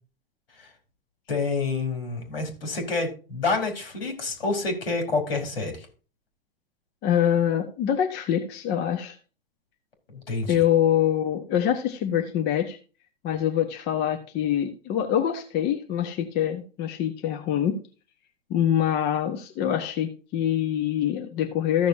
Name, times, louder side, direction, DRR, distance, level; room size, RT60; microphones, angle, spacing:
voice 1, 1.3-5.9 10.1-10.6, left 3 dB, 80° left, 4 dB, 4.1 m, -28 dB
voice 2, 7.0-9.1 10.5-12.8 13.2-17.8 18.5-21.9, left 10 dB, 35° left, 5 dB, 1.3 m, -25 dB
14.0 x 6.7 x 2.8 m, 0.35 s
hypercardioid pair, 110°, 29 cm